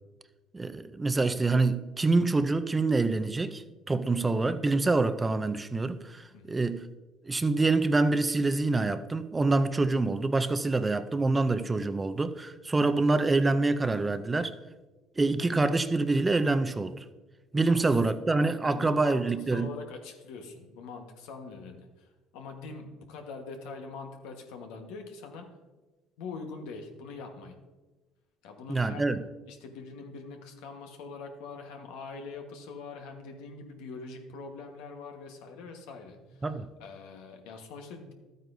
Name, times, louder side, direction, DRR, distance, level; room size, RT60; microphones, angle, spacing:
voice 1, 0.5-6.9 7.2-14.5 15.2-17.0 17.5-19.7 28.7-29.2 36.4-36.7, right 3 dB, 15° right, 0.5 m, -26 dB
voice 2, 6.3-6.6 17.7-17.8 18.6-25.6 26.2-27.6 28.4-29.1 29.5-36.5 36.8-38.1, left 4 dB, 85° left, 1.3 m, -43 dB
12.5 x 9.0 x 2.6 m
cardioid pair, 110°, 0 cm